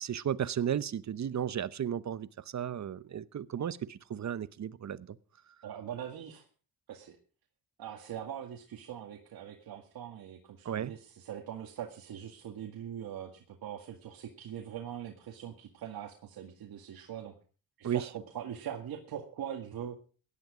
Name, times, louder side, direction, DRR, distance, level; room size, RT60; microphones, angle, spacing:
voice 1, 0.0-5.2 10.6-10.9 17.8-18.1, right 9 dB, 50° right, 16 dB, 0.9 m, -34 dB
voice 2, 5.6-6.5 6.9-7.2 7.8-17.3 17.8-20.0, right 9 dB, 75° right, 2 dB, 2.1 m, -42 dB
16.5 x 11.0 x 5.0 m, 0.39 s
cardioid pair, 75°, 37 cm